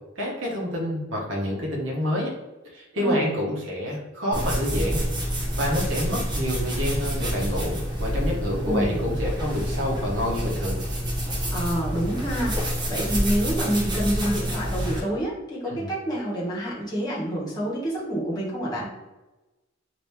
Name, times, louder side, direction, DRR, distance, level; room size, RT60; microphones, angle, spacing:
voice 1, 0.2-2.3 2.7-5.0 5.6-10.8 15.7-15.9, equal, 70° right, -2 dB, 0.9 m, -28 dB
voice 2, 2.9-3.3 8.6-9.0 11.5-18.9, right 1 dB, 20° left, -6 dB, 1.2 m, -28 dB
sound 1, 4.3-15.0, equal, 25° right, 0.8 m, -28 dB
2.9 x 2.7 x 3.4 m, 1.1 s
head